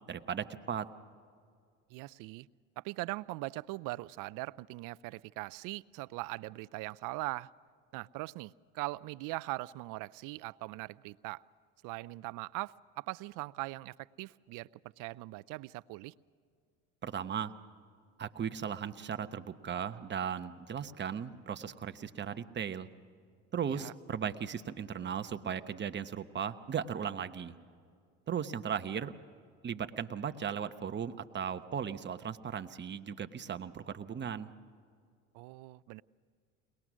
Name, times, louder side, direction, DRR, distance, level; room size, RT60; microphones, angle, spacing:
voice 1, 0.1-0.9 17.0-17.5 18.2-22.9 23.5-27.6 28.3-29.1 29.6-34.5, right 8 dB, 30° right, 1.0 m, -37 dB
voice 2, 1.9-2.5 2.8-7.5 7.9-11.4 11.8-14.7 15.0-16.1 23.7-23.9 35.3-36.0, right 21 dB, 65° right, 0.5 m, -41 dB
22.0 x 19.5 x 6.2 m
supercardioid pair, 85°, 34 cm